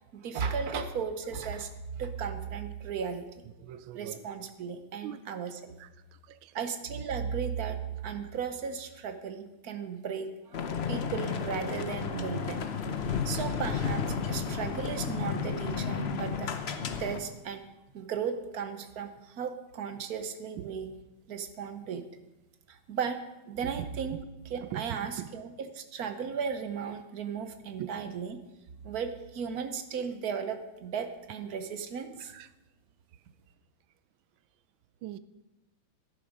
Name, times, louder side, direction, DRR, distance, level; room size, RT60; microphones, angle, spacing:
voice 1, 0.1-3.3 3.9-5.7 6.5-7.8 8.0-12.7 13.2-16.5 17.0-17.7 17.9-20.9 21.3-22.0 22.7-28.4 28.8-32.3, right 6 dB, 55° right, 9 dB, 1.2 m, -36 dB
voice 2, 3.6-4.2 5.0-5.2 5.8-5.9 6.3-6.5 13.0-13.3 15.3-15.4 20.6-20.7 24.7-25.3 27.8-27.9 32.3-32.5 35.0-35.2, right 12 dB, 75° right, 15 dB, 1.3 m, -40 dB
sound 1, 10.5-17.2, left 6 dB, 65° left, 0.6 m, -32 dB
11.5 x 10.5 x 5.1 m, 1.0 s
omnidirectional pair, 2.2 m